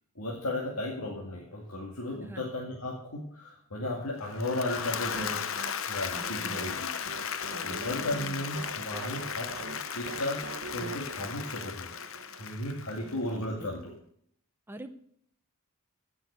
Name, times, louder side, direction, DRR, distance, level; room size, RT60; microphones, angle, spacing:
voice 1, 0.2-5.4 5.9-6.9 7.3-9.5 9.9-10.4 10.7-11.9 12.4-13.9, left 1 dB, 90° left, -2 dB, 2.3 m, -35 dB
Applause / Crowd, 4.2-13.4, left 7 dB, 65° left, 0.8 m, -36 dB
sound 1, 5.0-12.4, right 3 dB, 60° right, 1.0 m, -44 dB
voice 2, 6.1-6.7 7.5-8.4 13.0-13.7 14.7-14.9, equal, 10° right, 7 dB, 0.8 m, -45 dB
15.5 x 6.4 x 8.1 m, 0.67 s
head